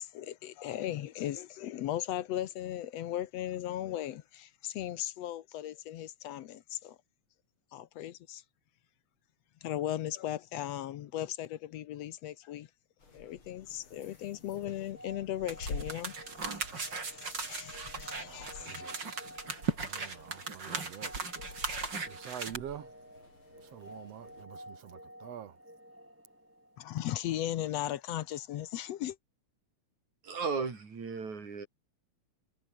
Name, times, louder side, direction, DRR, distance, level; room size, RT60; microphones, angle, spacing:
voice 1, 0.0-7.0 7.7-8.4 9.6-12.7 13.1-16.2 16.7-18.9 26.8-29.2, left 12 dB, 70° left, 2.0 m, -37 dB
sound 1, 13.0-24.4, left 3 dB, 45° left, 6.1 m, -50 dB
sound 2, 14.6-27.3, equal, 5° right, 7.8 m, -52 dB
sound 3, 15.5-22.6, right 4 dB, 35° right, 4.3 m, -38 dB
voice 2, 18.2-19.3 19.8-21.1 22.1-22.9 23.7-25.5, right 10 dB, 65° right, 2.1 m, -46 dB
voice 3, 30.2-31.7, right 5 dB, 80° right, 6.0 m, -35 dB
omnidirectional pair, 3.3 m